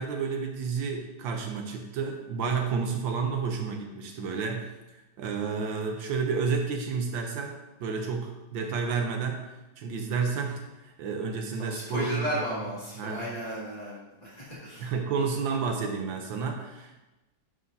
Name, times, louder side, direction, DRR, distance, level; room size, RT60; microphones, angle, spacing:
voice 1, 0.0-4.7 5.2-9.4 9.8-10.6 11.0-12.3 13.0-13.3 14.8-17.0, right 5 dB, 75° right, 3 dB, 1.5 m, -30 dB
voice 2, 11.6-14.9, equal, 20° left, -7 dB, 2.2 m, -34 dB
9.3 x 6.6 x 2.7 m, 1.0 s
omnidirectional pair, 2.2 m